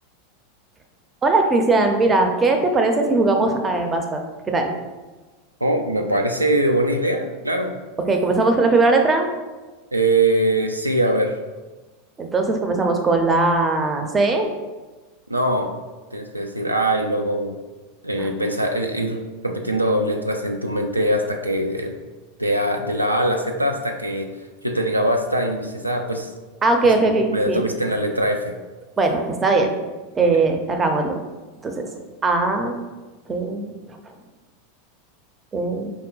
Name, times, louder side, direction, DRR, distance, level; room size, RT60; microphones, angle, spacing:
voice 1, 1.2-4.2 4.5-4.7 8.1-9.3 12.2-14.5 18.2-18.3 26.6-27.6 29.0-29.7 30.1-31.2 31.6-31.8 32.2-32.8 33.3-34.0 35.5-35.9, right 3 dB, 20° right, 4 dB, 0.5 m, -19 dB
voice 2, 5.6-7.7 9.9-11.4 15.3-15.7 16.1-17.5 18.0-22.0 22.4-24.3 24.6-26.3 27.0-28.5 30.2-30.4, right 1 dB, 90° right, 3 dB, 0.3 m, -22 dB
4.6 x 2.1 x 3.8 m, 1.2 s
figure-of-eight pair, 85°, 0 cm